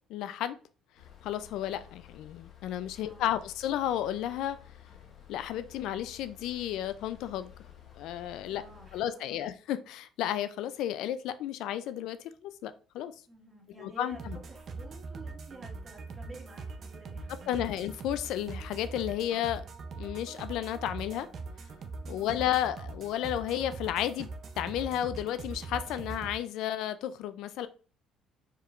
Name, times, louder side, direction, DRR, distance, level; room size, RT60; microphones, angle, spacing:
voice 1, 0.1-0.6 1.2-4.6 5.3-7.5 8.0-8.6 8.9-13.1 13.8-14.4 17.5-19.7 20.0-21.3 22.1-24.3 24.6-27.7, left 11 dB, 75° left, 0.3 m, -32 dB
sound 1, 1.0-9.0, left 10 dB, 50° left, 1.2 m, -53 dB
voice 2, 3.0-3.4 8.5-9.5 13.3-14.2 14.5-17.7 22.0-22.5, right 2 dB, 25° right, 1.7 m, -51 dB
sound 2, 14.1-26.3, right 3 dB, 45° right, 0.6 m, -42 dB
4.6 x 3.2 x 2.4 m
cardioid pair, 110°, 0 cm